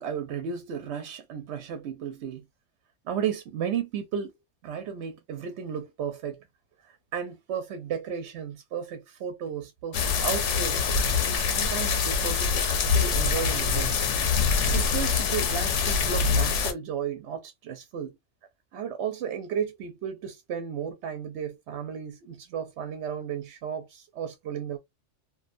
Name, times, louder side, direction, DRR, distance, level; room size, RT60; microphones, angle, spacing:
voice 1, 0.0-2.4 3.0-4.3 4.6-6.4 6.8-11.0 11.3-13.9 14.7-18.1 18.7-24.8, right 8 dB, 70° right, 0.8 m, -34 dB
sound 1, 9.9-16.7, left 5 dB, 70° left, 0.9 m, -25 dB
2.5 x 2.2 x 2.4 m
omnidirectional pair, 1.3 m